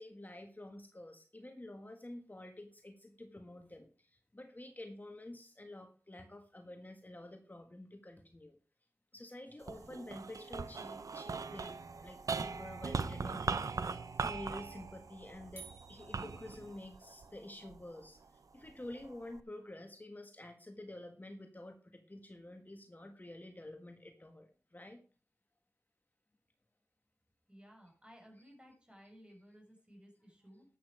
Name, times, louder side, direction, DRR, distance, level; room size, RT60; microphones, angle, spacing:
voice 1, 0.0-8.6 9.1-13.6 14.1-25.0, left 1 dB, 30° left, 5 dB, 1.6 m, -49 dB
sound 1, 9.6-18.1 18.6-19.4, right 4 dB, 85° right, 0.8 m, -40 dB
sound 2, 15.6-17.1, right 5 dB, 35° right, 6.5 m, -55 dB
voice 2, 27.5-30.7, equal, 20° right, 2 dB, 6.0 m, -58 dB
12.0 x 8.7 x 4.9 m, 0.38 s
cardioid pair, 45°, 6 cm